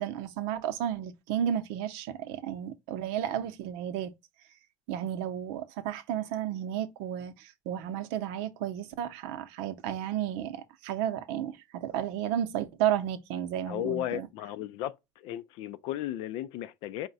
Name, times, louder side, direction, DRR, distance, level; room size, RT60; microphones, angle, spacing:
voice 1, 0.0-4.1 4.9-14.3, right 10 dB, 70° right, 0.7 m, -32 dB
voice 2, 13.7-17.1, left 13 dB, 60° left, 0.4 m, -35 dB
4.9 x 2.2 x 4.0 m
cardioid pair, 135°, 10 cm